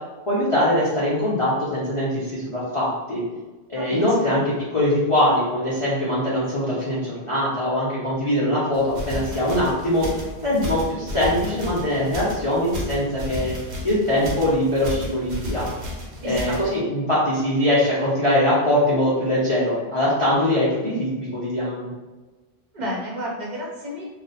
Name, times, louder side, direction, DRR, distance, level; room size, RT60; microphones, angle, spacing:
voice 1, 0.3-3.2 3.7-10.1 10.4-13.6 13.8-15.7 16.2-21.9, left 1 dB, 35° left, -10 dB, 0.7 m, -22 dB
voice 2, 3.7-4.4 16.2-16.5 22.7-24.1, equal, 45° right, -3 dB, 0.8 m, -31 dB
sound 1, 8.7-16.7, equal, 80° right, 1.0 m, -33 dB
2.4 x 2.2 x 3.9 m, 1.2 s
omnidirectional pair, 1.1 m